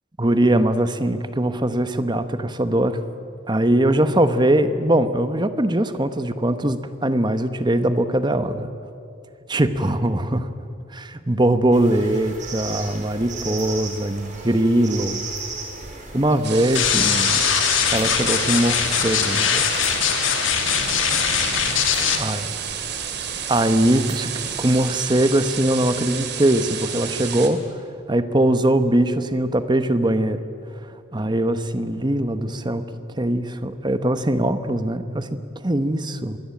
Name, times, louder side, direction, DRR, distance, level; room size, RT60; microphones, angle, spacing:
voice 1, 0.2-3.0 3.5-8.7 9.5-10.5 10.9-15.3 16.1-17.5 17.9-19.9 22.2-22.4 23.5-24.3 24.6-30.4 30.8-32.8 33.2-36.4, right 1 dB, 25° right, 10 dB, 1.1 m, -21 dB
sound 1, 11.7-24.9, right 3 dB, 40° right, 4.8 m, -37 dB
sound 2, 16.4-27.5, right 8 dB, 60° right, 2.6 m, -31 dB
sound 3, 16.7-22.2, left 7 dB, 85° left, 2.5 m, -21 dB
25.5 x 21.0 x 8.6 m, 2.5 s
head